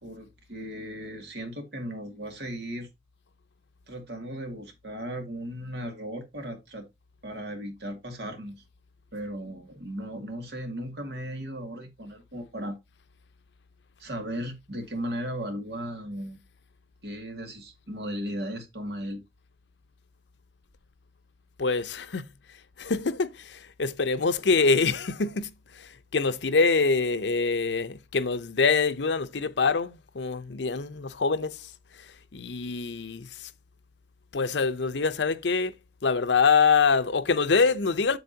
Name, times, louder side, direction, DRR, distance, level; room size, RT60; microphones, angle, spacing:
voice 1, 0.0-2.9 3.9-6.9 7.2-8.6 9.1-12.8 14.0-16.4 17.0-19.2, equal, 70° right, 2.2 m, -36 dB
voice 2, 21.6-22.3 22.8-31.7 32.3-33.5 34.3-35.7 36.0-38.2, left 4 dB, 85° left, 0.7 m, -25 dB
8.0 x 7.2 x 2.8 m
head